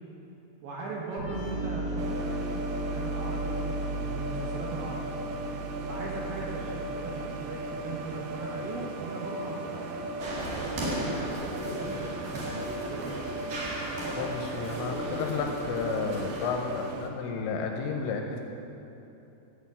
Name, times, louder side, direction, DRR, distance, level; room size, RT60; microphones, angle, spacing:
voice 1, 0.6-5.0 5.9-12.6 12.9-13.2, right 2 dB, 70° right, -3 dB, 2.5 m, -39 dB
sound 1, 1.2-8.7, right 1 dB, 35° right, 1.7 m, -36 dB
sound 2, 2.0-17.1, right 2 dB, 85° right, 2.2 m, -37 dB
sound 3, 10.2-16.5, equal, 55° right, 3.3 m, -36 dB
voice 2, 14.2-18.4, left 5 dB, 75° left, 3 dB, 2.9 m, -32 dB
13.5 x 6.0 x 8.6 m, 3.0 s
omnidirectional pair, 5.7 m